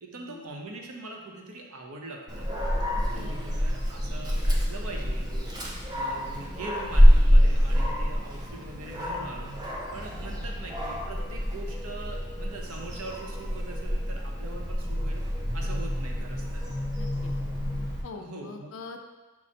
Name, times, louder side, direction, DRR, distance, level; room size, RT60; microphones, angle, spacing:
voice 1, 0.0-2.5 3.1-15.2 15.5-16.6 18.2-18.7, right 2 dB, 75° right, 0 dB, 0.7 m, -42 dB
Dog, 2.3-18.0, equal, 20° right, 0.6 m, -26 dB
voice 2, 16.9-17.3 18.0-19.0, left 4 dB, 60° left, 4 dB, 0.4 m, -43 dB
6.0 x 2.0 x 4.2 m, 1.2 s
head